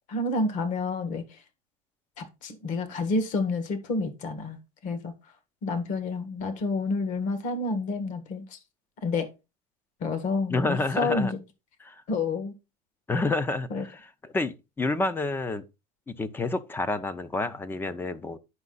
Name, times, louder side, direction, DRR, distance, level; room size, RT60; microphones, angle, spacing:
voice 1, 0.1-1.4 2.2-4.6 4.8-5.1 5.6-8.6 9.0-9.3 10.0-11.3 12.1-12.5 13.7-13.9, left 3 dB, 40° left, 1.7 m, -29 dB
voice 2, 10.5-11.3 11.8-12.0 13.1-15.6 16.1-18.4, left 2 dB, 10° left, 0.6 m, -29 dB
9.7 x 5.6 x 4.0 m
cardioid pair, 155°, 19 cm